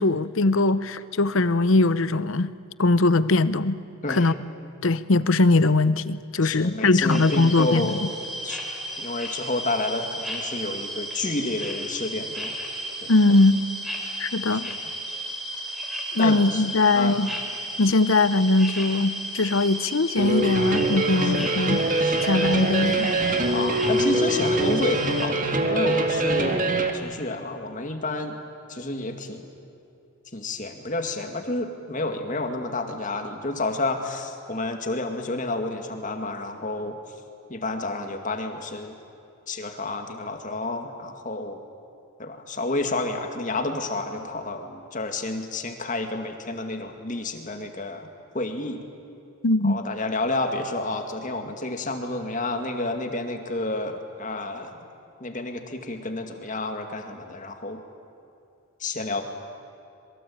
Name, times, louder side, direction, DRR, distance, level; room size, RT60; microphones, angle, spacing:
voice 1, 0.0-2.5 2.8-3.8 4.1-4.3 4.8-8.1 13.1-13.6 14.2-14.7 16.1-17.3 17.8-23.2 49.4-49.8, left 2 dB, 65° left, 16 dB, 0.8 m, -21 dB
voice 2, 6.4-8.1 8.4-8.6 9.0-12.5 13.0-13.1 14.5-14.8 16.2-16.6 16.9-17.1 21.2-21.3 22.0-22.3 23.5-26.7 26.9-28.4 28.7-29.4 30.3-37.0 37.5-39.0 39.5-41.6 42.2-48.1 48.3-48.8 49.6-54.8 55.2-57.8 58.8-59.2, left 2 dB, 35° left, 5 dB, 2.2 m, -30 dB
sound 1, 7.1-25.3, equal, ahead, 3.7 m, -34 dB
sound 2, 20.2-26.9, right 2 dB, 35° right, 2.0 m, -24 dB
26.5 x 23.0 x 8.8 m, 2.6 s
head